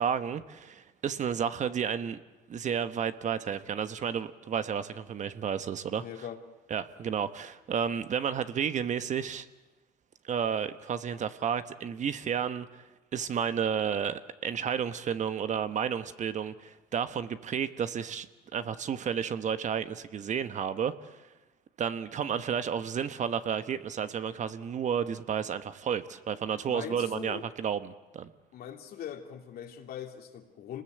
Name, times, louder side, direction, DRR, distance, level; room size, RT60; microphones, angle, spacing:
voice 1, 0.0-2.2 2.5-6.0 6.7-9.5 10.2-12.8 13.1-18.3 18.5-21.3 21.8-28.3, right 7 dB, 45° right, 11 dB, 1.2 m, -32 dB
voice 2, 6.0-6.4 26.6-27.4 28.5-30.8, left 9 dB, 65° left, 4 dB, 2.7 m, -41 dB
26.5 x 20.0 x 8.0 m, 1.1 s
cardioid pair, 110°, 17 cm